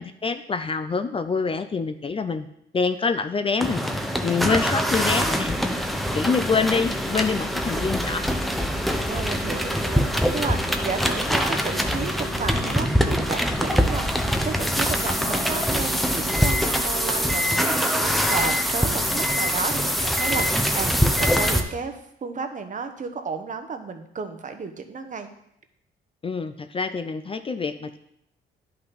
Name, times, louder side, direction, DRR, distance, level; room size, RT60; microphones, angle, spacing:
voice 1, 0.0-2.5 2.7-3.8 4.2-5.6 6.1-8.3 26.2-28.0, left 4 dB, 30° left, 10 dB, 0.5 m, -26 dB
sound 1, 3.6-21.6, equal, ahead, 0.8 m, -24 dB
voice 2, 9.1-25.3, right 5 dB, 40° right, 7 dB, 1.0 m, -33 dB
10.5 x 5.7 x 4.1 m, 0.77 s
cardioid pair, 90°, 20 cm